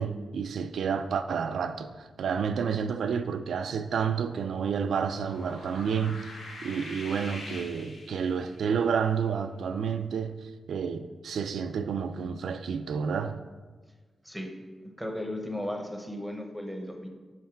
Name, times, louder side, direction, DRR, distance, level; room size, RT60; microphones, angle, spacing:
voice 1, 0.0-6.3 6.6-13.4, right 6 dB, 85° right, 0.3 m, -30 dB
sound 1, 4.9-8.7, left 2 dB, 85° left, 1.5 m, -44 dB
voice 2, 15.0-17.1, left 1 dB, ahead, 0.7 m, -35 dB
5.7 x 5.2 x 4.4 m
wide cardioid pair, 160°, 0 cm